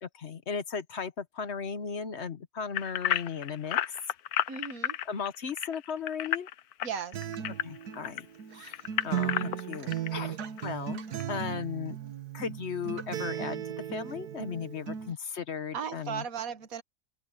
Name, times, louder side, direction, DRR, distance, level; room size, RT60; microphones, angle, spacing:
voice 1, 0.0-4.0 5.0-6.5 7.5-8.3 8.5-10.4 10.6-11.0 11.3-12.0 12.3-16.2, left 6 dB, 50° left, 1.2 m, -36 dB
keyboard keys underwater, 2.7-8.2 8.7-10.1 10.6-10.7 11.2-11.3, left 11 dB, 75° left, 1.2 m, -31 dB
voice 2, 4.5-5.0 6.8-7.3 15.7-16.8, right 7 dB, 65° right, 1.7 m, -36 dB
Acoustic guitar, 7.1-15.1, right 9 dB, 85° right, 1.8 m, -36 dB
open air
omnidirectional pair, 1.6 m